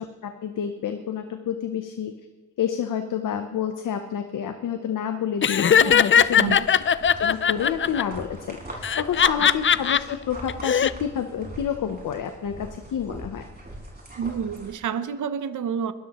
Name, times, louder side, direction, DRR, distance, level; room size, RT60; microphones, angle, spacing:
voice 1, 0.0-2.1 2.6-6.6 7.2-13.5, left 8 dB, 90° left, 7 dB, 0.7 m, -29 dB
Laughter, 5.4-8.0 8.8-10.0 10.5-10.9, left 8 dB, 40° left, 0.4 m, -19 dB
sound 1, 6.1-14.8, right 1 dB, 30° right, 5.0 m, -40 dB
voice 2, 6.3-6.7 9.4-9.5 14.2-15.9, right 7 dB, 75° right, 12 dB, 0.7 m, -29 dB
22.0 x 13.0 x 3.0 m, 1.3 s
cardioid pair, 55°, 31 cm